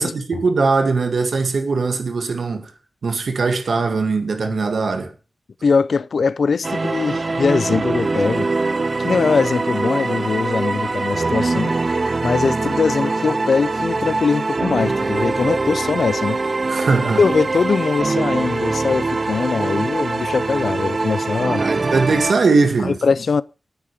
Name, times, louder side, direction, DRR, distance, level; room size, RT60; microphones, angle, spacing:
voice 1, 0.0-2.7 3.0-5.1 16.7-17.2 21.6-23.0, right 4 dB, 80° right, 1.9 m, -20 dB
voice 2, 5.6-8.5 9.0-11.8 12.2-16.4 17.2-21.7 22.9-23.4, left 5 dB, 75° left, 0.5 m, -21 dB
sound 1, 6.6-22.3, right 3 dB, 40° right, 0.5 m, -23 dB
9.4 x 8.4 x 6.5 m
wide cardioid pair, 125°, 0 cm